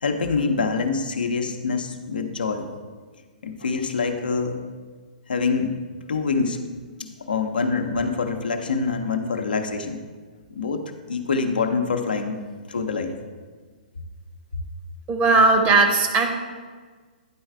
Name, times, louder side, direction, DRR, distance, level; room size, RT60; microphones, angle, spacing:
voice 1, 0.0-2.7 3.4-4.6 5.3-5.8 6.1-6.6 7.0-10.0 10.5-12.4 12.7-13.1 14.5-14.6, left 4 dB, 75° left, 5 dB, 0.7 m, -25 dB
voice 2, 15.1-16.3, right 3 dB, 30° right, 4 dB, 0.9 m, -18 dB
9.7 x 3.9 x 4.4 m, 1.5 s
figure-of-eight pair, 120°, 5 cm